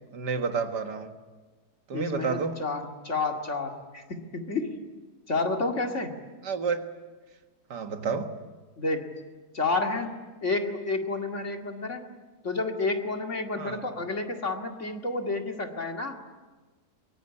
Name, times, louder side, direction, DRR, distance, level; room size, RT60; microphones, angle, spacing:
voice 1, 0.1-1.1 1.9-2.6 6.4-6.9 7.7-8.4 13.6-13.9, right 5 dB, 80° right, 2.1 m, -30 dB
voice 2, 1.9-4.8 5.3-6.2 8.8-9.2 9.5-12.1 12.4-16.1, left 3 dB, 45° left, 2.5 m, -30 dB
24.0 x 23.5 x 9.8 m
omnidirectional pair, 1.8 m